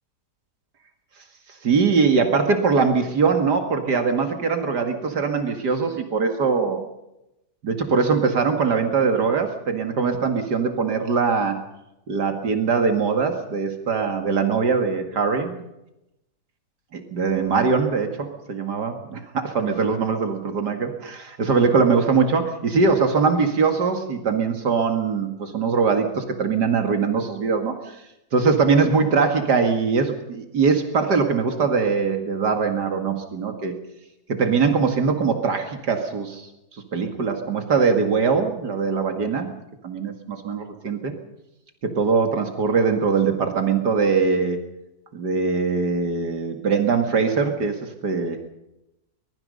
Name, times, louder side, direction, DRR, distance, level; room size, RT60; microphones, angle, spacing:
voice 1, 1.6-6.9 7.6-11.6 12.1-15.6 16.9-27.7 28.3-33.7 34.3-36.5 36.9-39.5 39.8-41.1 41.8-44.6 45.1-48.4, right 5 dB, 80° right, 6 dB, 2.7 m, -22 dB
23.0 x 22.5 x 5.4 m, 0.89 s
omnidirectional pair, 1.7 m